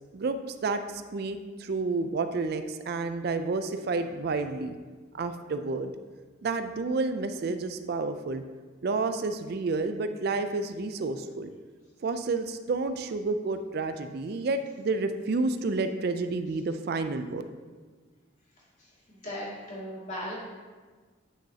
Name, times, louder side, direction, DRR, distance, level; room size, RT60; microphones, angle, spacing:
voice 1, 0.1-4.7 5.2-5.9 6.4-8.4 8.8-11.5 12.0-17.4, right 3 dB, 50° right, 9 dB, 0.4 m, -30 dB
voice 2, 18.8-20.3, equal, 40° left, -6 dB, 2.2 m, -38 dB
8.5 x 6.2 x 2.8 m, 1.4 s
head